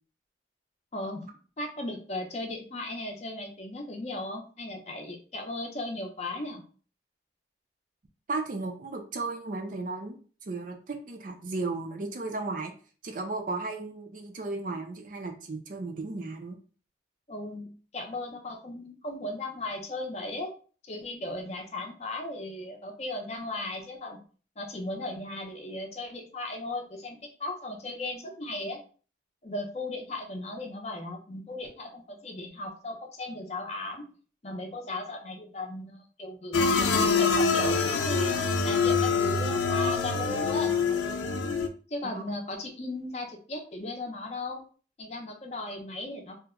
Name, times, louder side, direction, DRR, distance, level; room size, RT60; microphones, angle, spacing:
voice 1, 0.9-1.3 1.6-6.6 17.3-20.5 20.8-24.2 24.6-28.8 29.4-34.1 34.4-38.4 38.6-40.7 41.9-44.6 45.0-46.4, left 2 dB, 35° left, 2 dB, 0.6 m, -36 dB
voice 2, 8.3-10.2 10.5-12.7 13.0-16.6 42.0-42.2, right 3 dB, 45° right, 3 dB, 0.5 m, -35 dB
sound 1, 36.5-41.7, left 4 dB, 80° left, 0.5 m, -25 dB
2.8 x 2.1 x 3.5 m, 0.40 s
head